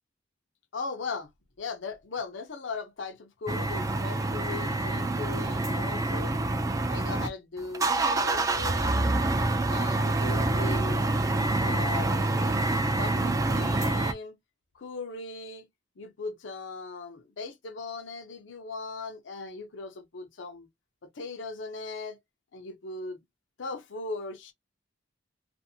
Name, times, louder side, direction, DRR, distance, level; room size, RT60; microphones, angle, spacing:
voice 1, 0.7-1.3 1.6-6.4 6.9-8.9 9.7-11.1 11.5-12.6 12.9-14.4 14.7-15.7 16.0-20.7 21.1-22.2 22.5-23.2 23.6-24.5, left 4 dB, 75° left, 0.6 m, -38 dB
sound 1, 3.5-7.3 7.6-14.1, right 2 dB, 20° right, 0.3 m, -27 dB
2.5 x 2.5 x 2.6 m
head